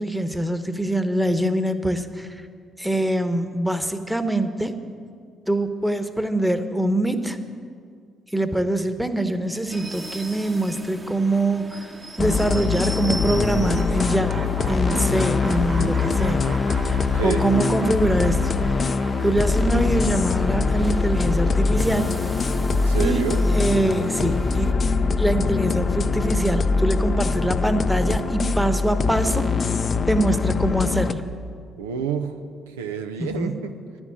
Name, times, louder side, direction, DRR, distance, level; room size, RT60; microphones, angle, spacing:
voice 1, 0.0-2.4 2.8-4.7 5.5-7.4 8.3-11.9 12.2-16.4 16.9-18.5 18.8-18.9 19.2-22.1 23.0-24.7 25.2-29.4 30.1-31.2 33.2-33.5, right 1 dB, 5° right, 9 dB, 1.0 m, -24 dB
sound 1, 9.7-24.7, right 2 dB, 25° right, 1.0 m, -38 dB
A ticket from Earth, 12.2-31.1, left 4 dB, 45° left, 0.5 m, -23 dB
sound 2, 13.7-23.5, right 3 dB, 45° right, 1.8 m, -39 dB
voice 2, 22.7-23.4 31.8-32.3 32.7-33.7, right 7 dB, 90° right, 6 dB, 0.5 m, -28 dB
11.0 x 7.1 x 8.4 m, 2.2 s
hypercardioid pair, 50°, 0 cm